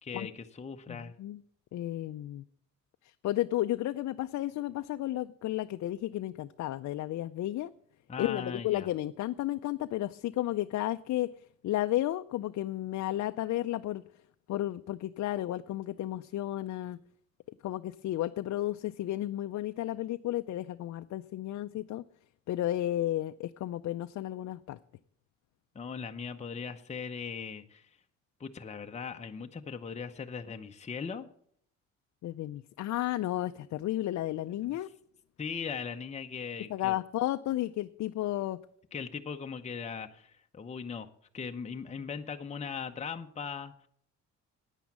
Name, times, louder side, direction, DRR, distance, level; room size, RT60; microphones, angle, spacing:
voice 1, 0.0-1.1 8.1-8.9 25.7-27.9 28.4-31.3 34.6-34.8 35.4-37.0 38.9-41.1 41.3-43.7, left 6 dB, 20° left, 5 dB, 0.7 m, -39 dB
voice 2, 0.9-1.4 1.7-2.4 3.0-7.7 8.2-11.3 11.6-14.0 14.5-17.0 17.6-22.0 22.5-24.8 32.2-34.9 36.7-38.6, left 14 dB, 65° left, 9 dB, 0.5 m, -33 dB
10.0 x 9.1 x 7.2 m, 0.65 s
cardioid pair, 90°, 30 cm